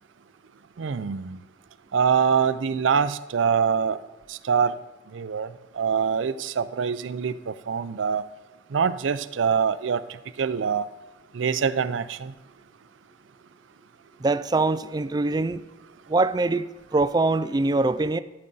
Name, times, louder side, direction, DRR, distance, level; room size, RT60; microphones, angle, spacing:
voice 1, 0.8-1.4 1.9-4.0 4.5-4.7 5.1-5.5 5.8-8.2 8.7-10.0 10.4-10.8 11.3-12.3, right 6 dB, 90° right, 0.5 m, -24 dB
voice 2, 14.2-15.6 16.1-16.6 16.9-18.2, right 3 dB, 20° right, 0.3 m, -23 dB
13.5 x 8.8 x 4.0 m
head